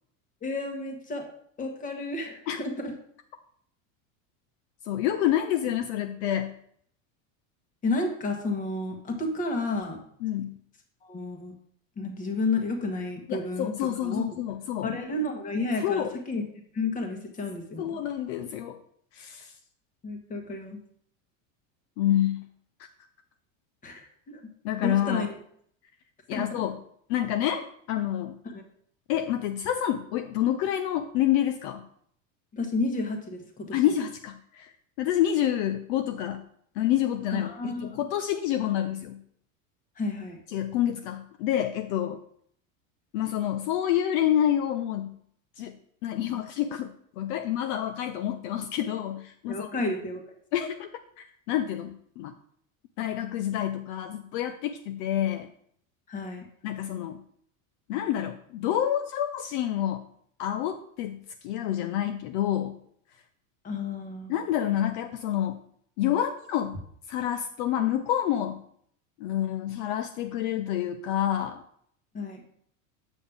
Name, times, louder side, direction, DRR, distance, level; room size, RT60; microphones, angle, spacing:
voice 1, 0.4-1.3 1.6-2.9 7.8-10.0 11.0-11.5 12.0-13.7 14.0-14.3 14.8-16.4 16.7-18.0 20.0-20.8 23.8-24.0 24.3-24.4 24.8-25.4 26.3-26.6 28.4-28.6 32.5-34.0 37.3-38.0 40.0-40.4 49.4-50.2 56.1-56.5 63.6-64.3 72.1-72.4, left 2 dB, 20° left, 3 dB, 1.3 m, -31 dB
voice 2, 4.8-6.5 10.2-10.5 13.3-14.9 15.8-16.1 17.8-18.8 19.1-19.5 22.0-22.4 24.6-25.3 26.3-26.8 27.1-28.4 29.1-31.8 33.7-34.7 35.0-36.4 36.8-39.2 40.5-42.2 43.1-45.1 45.6-45.8 46.0-49.7 50.5-50.9 51.2-52.3 53.0-55.5 56.6-57.2 57.9-60.0 60.4-62.8 64.3-65.6 66.0-66.8 67.1-68.6 69.2-71.6, left 11 dB, 60° left, 7 dB, 0.6 m, -28 dB
8.4 x 7.2 x 3.5 m, 0.64 s
supercardioid pair, 160°, 40 cm